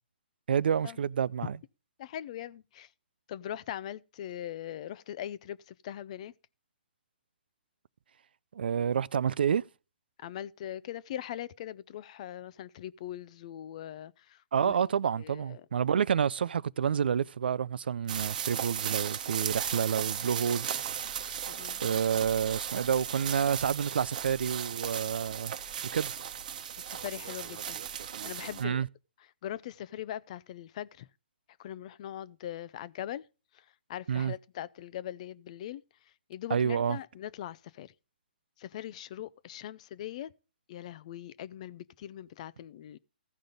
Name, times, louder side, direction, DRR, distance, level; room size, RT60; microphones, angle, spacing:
voice 1, 0.5-1.6 8.5-9.6 14.5-21.3 21.8-25.6 25.9-26.2 28.6-28.9 34.1-34.3 36.5-37.0, right 7 dB, 70° right, 0.4 m, -29 dB
voice 2, 2.0-2.9 3.3-6.3 10.2-14.7 15.2-15.6 21.5-21.8 26.9-27.8 28.2-28.8 29.4-31.1 31.6-33.3 33.5-35.8 36.3-37.9 38.6-40.3 40.7-43.0, left 11 dB, 40° left, 0.5 m, -41 dB
sound 1, 18.1-28.6, right 9 dB, 50° right, 1.0 m, -36 dB
15.5 x 5.2 x 3.9 m
hypercardioid pair, 145°, 6 cm